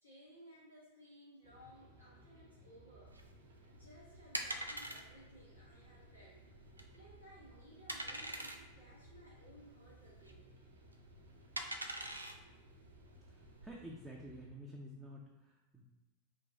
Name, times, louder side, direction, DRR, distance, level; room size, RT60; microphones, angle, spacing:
voice 1, 0.0-3.2 3.7-6.4 6.9-10.5, equal, 90° left, -8 dB, 1.3 m, -59 dB
sound 1, 1.4-14.5, equal, 55° right, 0.8 m, -61 dB
sound 2, 3.1-13.7, right 1 dB, 80° right, 0.4 m, -45 dB
voice 2, 13.6-15.8, equal, 5° right, -3 dB, 0.5 m, -50 dB
3.4 x 3.0 x 3.9 m, 1.1 s
figure-of-eight pair, 90°, 0 cm